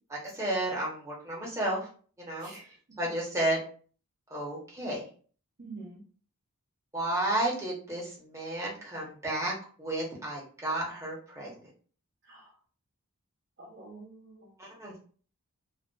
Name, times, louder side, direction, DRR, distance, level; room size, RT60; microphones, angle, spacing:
voice 1, 0.1-1.9 2.2-2.5 3.0-3.6 4.3-5.0 6.9-11.5 14.6-14.9, right 1 dB, 15° right, -5 dB, 0.9 m, -32 dB
voice 2, 2.4-2.7 5.6-6.0 12.3-12.5 13.6-14.8, right 3 dB, 50° right, -5 dB, 0.7 m, -47 dB
2.5 x 2.4 x 2.3 m, 0.42 s
head